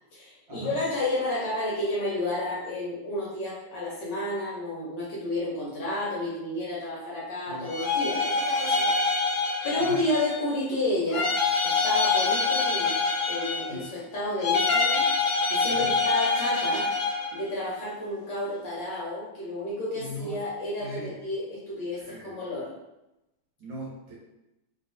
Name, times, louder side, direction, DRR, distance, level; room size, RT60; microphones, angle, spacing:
voice 1, 0.0-8.9 9.2-11.3 11.6-13.0 13.3-15.1 15.5-16.9 17.3-22.7, left 1 dB, 60° left, -6 dB, 1.3 m, -31 dB
sound 1, 7.6-10.5 11.1-13.9 14.4-17.4, left 4 dB, 80° left, 1.4 m, -25 dB
voice 2, 20.0-20.4 20.8-21.2 22.1-22.3 23.6-24.1, equal, 65° right, -5 dB, 1.6 m, -39 dB
3.3 x 2.9 x 2.6 m, 0.93 s
omnidirectional pair, 2.4 m